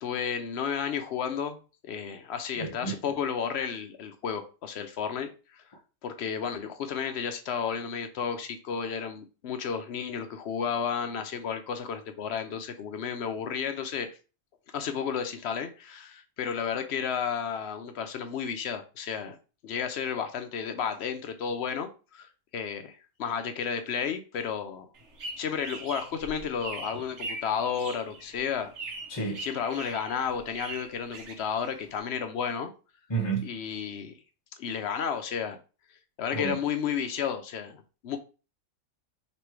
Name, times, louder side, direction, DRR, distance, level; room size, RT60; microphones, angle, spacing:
voice 1, 0.0-1.6 1.8-5.6 6.0-14.1 14.7-19.4 19.6-24.9 25.4-28.7 29.2-32.7 33.4-34.1 34.6-35.6 36.2-38.2, left 7 dB, 65° left, 0.8 m, -32 dB
voice 2, 2.6-2.9 29.1-29.4 33.1-33.5 36.3-36.6, right 5 dB, 25° left, 0.8 m, -30 dB
sound 1, 24.9-32.0, right 3 dB, 65° right, 1.2 m, -42 dB
3.1 x 3.0 x 4.6 m
omnidirectional pair, 1.3 m